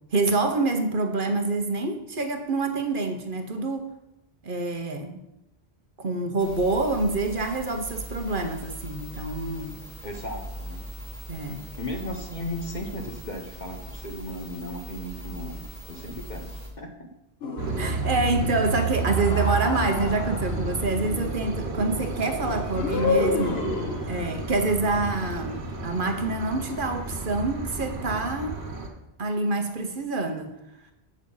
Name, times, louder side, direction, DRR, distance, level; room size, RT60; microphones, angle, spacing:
voice 1, 0.1-3.9 4.4-5.2 6.0-9.7 11.3-11.6 17.8-23.6 24.0-28.5 29.2-30.5, right 3 dB, 55° right, 5 dB, 1.1 m, -27 dB
sound 1, 6.4-16.7, right 1 dB, 25° left, 2.2 m, -40 dB
voice 2, 10.0-10.8 11.8-17.1 22.9-23.8, left 1 dB, 45° left, 3 dB, 1.2 m, -36 dB
sound 2, 17.4-18.2 19.0-20.8 22.7-24.3, left 4 dB, 70° left, 1.2 m, -29 dB
sound 3, 17.6-28.9, right 3 dB, 85° right, 1.6 m, -31 dB
7.8 x 6.4 x 5.4 m, 0.89 s
omnidirectional pair, 1.1 m